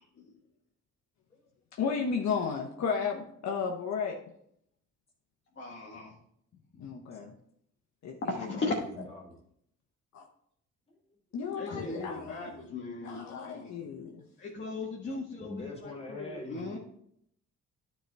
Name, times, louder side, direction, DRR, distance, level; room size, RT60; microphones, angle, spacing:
voice 1, 1.8-4.2 6.8-7.3 8.0-8.5 10.1-10.3 11.3-12.5 13.0-14.2, left 6 dB, 65° left, 1 dB, 1.0 m, -33 dB
voice 2, 5.6-6.1 6.7-6.9 8.2-8.8 11.5-13.9 14.4-16.8, left 3 dB, 35° left, -2 dB, 1.4 m, -37 dB
voice 3, 8.8-9.4 11.7-12.7 14.1-14.3 15.4-16.8, left 1 dB, 20° left, -3 dB, 2.6 m, -44 dB
10.0 x 4.6 x 3.4 m, 0.70 s
cardioid pair, 90°, 30 cm